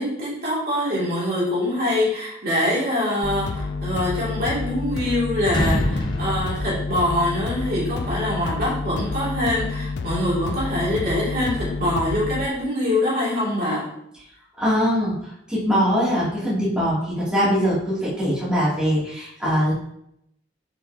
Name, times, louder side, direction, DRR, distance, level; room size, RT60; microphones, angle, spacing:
voice 1, 0.0-13.8, left 1 dB, 50° right, -7 dB, 2.8 m, -24 dB
sound 1, 3.2-12.5, left 3 dB, 60° left, 0.5 m, -29 dB
sound 2, 4.3-5.1 5.4-7.6, equal, 25° left, 0.9 m, -27 dB
voice 2, 14.6-19.7, equal, 5° right, -10 dB, 2.9 m, -22 dB
7.6 x 5.8 x 2.9 m, 0.75 s
head